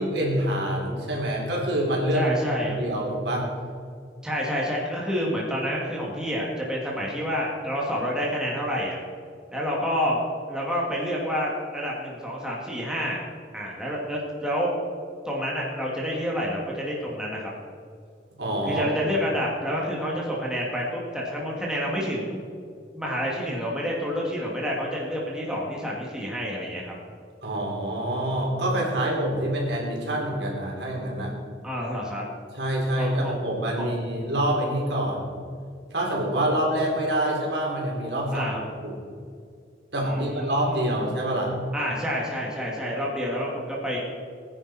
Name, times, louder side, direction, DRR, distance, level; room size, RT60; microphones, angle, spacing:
voice 1, 0.0-2.3 2.7-3.5 18.4-18.9 27.4-31.3 32.5-35.2 35.9-38.4 38.8-39.0 39.9-41.5, right 1 dB, 70° right, -2 dB, 3.9 m, -26 dB
voice 2, 2.1-2.8 4.2-9.0 9.5-10.2 10.5-13.2 13.5-14.8 15.2-17.5 18.7-22.4 22.9-26.9 31.6-32.3 33.0-33.4 33.8-33.9 38.3-38.6 40.0-41.0 41.7-44.0, equal, 5° right, -4 dB, 2.5 m, -28 dB
21.5 x 10.0 x 4.5 m, 2.3 s
head